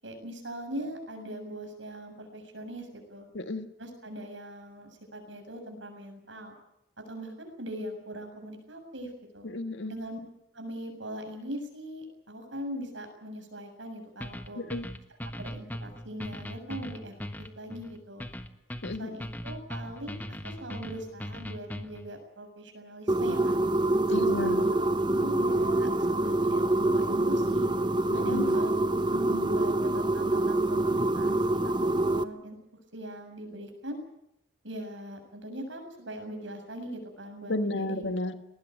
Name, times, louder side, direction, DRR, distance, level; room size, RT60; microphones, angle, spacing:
voice 1, 0.0-3.3 3.8-6.6 7.1-9.1 9.3-9.4 9.9-10.2 10.5-14.6 15.2-17.1 17.6-18.2 19.0-23.6 24.1-24.7 25.1-27.7 28.1-31.4 31.6-32.6 32.9-34.0 34.6-38.1, right 1 dB, 85° right, 5 dB, 7.2 m, -40 dB
voice 2, 3.3-3.7 9.4-9.9 14.6-14.9 18.8-19.2 24.1-24.7 28.1-28.5 37.5-38.3, left 2 dB, 80° left, 9 dB, 1.6 m, -32 dB
sound 1, 14.2-22.1, equal, 10° left, 1.3 m, -39 dB
sound 2, 23.1-32.2, right 2 dB, 25° right, 1.0 m, -26 dB
19.5 x 19.5 x 9.3 m, 0.81 s
head